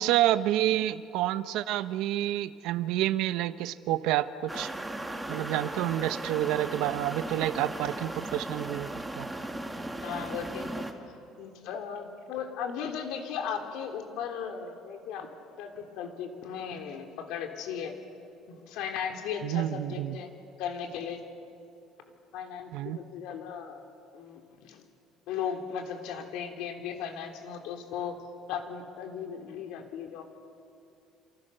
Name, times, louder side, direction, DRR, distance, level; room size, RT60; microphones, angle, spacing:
voice 1, 0.0-4.7 5.3-8.9 9.2-9.3 19.4-20.2 22.7-23.0, right 13 dB, 75° right, 13 dB, 1.0 m, -28 dB
sound 1, 4.5-10.9, right 1 dB, 10° right, 2.0 m, -37 dB
voice 2, 10.0-10.8 11.4-18.0 18.5-20.3 20.6-21.2 22.3-23.8 24.1-24.8 25.3-28.2 28.5-30.2, left 7 dB, 75° left, 4 dB, 3.7 m, -37 dB
28.0 x 27.5 x 6.8 m, 2.6 s
cardioid pair, 145°, 0 cm